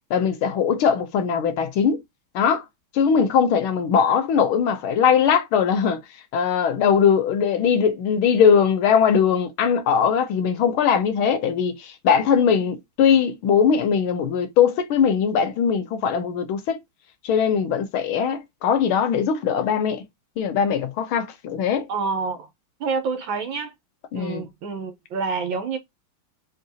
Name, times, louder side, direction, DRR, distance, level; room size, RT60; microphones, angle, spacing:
voice 1, 0.1-2.0 2.3-2.6 2.9-6.0 6.3-16.8 17.2-20.0 20.4-21.9 24.1-24.4, left 7 dB, 75° left, 1.7 m, -20 dB
voice 2, 21.9-22.5 22.8-23.7 24.1-25.8, right 4 dB, 70° right, 1.5 m, -27 dB
3.8 x 3.8 x 2.7 m
omnidirectional pair, 2.3 m